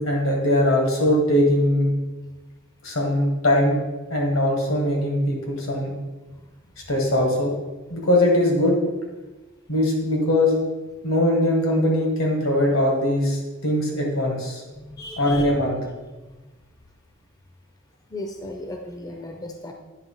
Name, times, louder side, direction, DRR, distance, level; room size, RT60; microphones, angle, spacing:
voice 1, 0.0-1.9 2.8-3.8 4.1-5.9 6.9-7.5 7.9-8.8 9.7-10.6 11.0-14.6 15.2-15.8, left 1 dB, 80° left, -1 dB, 1.9 m, -21 dB
voice 2, 14.7-15.5 16.2-16.3 18.1-19.7, left 1 dB, 20° left, 3 dB, 0.5 m, -36 dB
8.9 x 3.2 x 5.6 m, 1.2 s
head